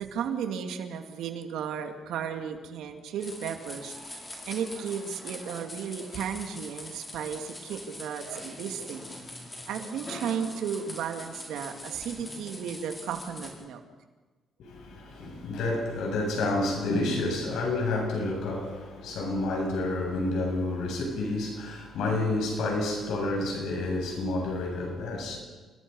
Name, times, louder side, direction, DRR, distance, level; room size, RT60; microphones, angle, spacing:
voice 1, 0.0-9.2 9.7-13.8, right 7 dB, 85° right, 2.4 m, -34 dB
sound 1, 3.2-13.5, left 1 dB, 25° left, 6.7 m, -43 dB
voice 2, 14.6-25.4, left 2 dB, 80° left, 7.7 m, -29 dB
28.5 x 21.0 x 5.6 m
cardioid pair, 90°, 0 cm